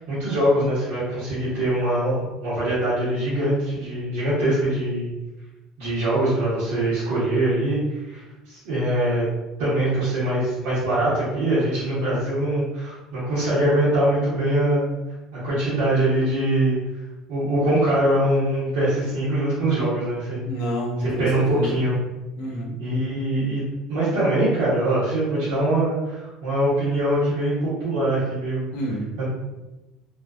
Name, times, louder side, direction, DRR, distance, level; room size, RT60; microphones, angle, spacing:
voice 1, 0.0-5.1 5.8-8.2 8.5-9.3 9.6-14.9 15.3-16.8 17.3-20.4 21.0-21.9 22.8-23.6 23.9-28.7 29.2-29.3, right 1 dB, 80° right, -11 dB, 1.0 m, -23 dB
voice 2, 20.5-21.8 22.4-22.7 28.7-29.0, equal, 85° left, -3 dB, 0.7 m, -28 dB
2.5 x 2.2 x 2.3 m, 1.0 s
supercardioid pair, 115°, 0 cm